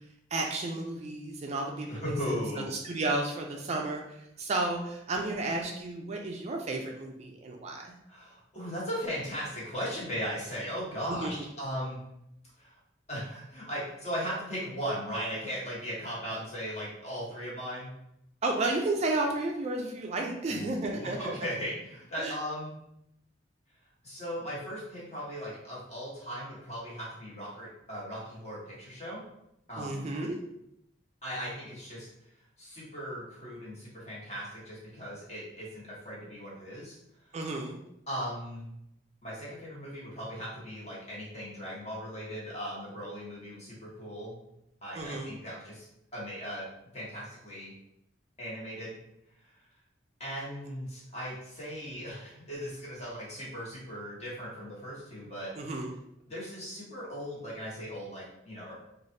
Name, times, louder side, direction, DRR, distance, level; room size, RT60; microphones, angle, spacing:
voice 1, 0.3-2.4 2.8-8.0 11.2-11.3 18.4-21.4 22.2-22.3 29.8-30.4 37.3-37.8 44.9-45.3 55.6-55.9, right 2 dB, 35° right, 1 dB, 0.3 m, -32 dB
voice 2, 1.9-2.7 8.1-12.0 12.6-12.8 13.1-17.9 20.4-22.7 24.0-29.2 29.7-30.0 31.2-32.1 32.6-37.0 38.1-38.7 39.2-44.4 44.8-45.9 46.1-46.7 46.9-47.7 48.4-49.0 49.4-49.5 50.2-55.5 56.3-58.7, equal, 35° left, -6 dB, 1.2 m, -38 dB
3.2 x 2.4 x 2.7 m, 0.80 s
head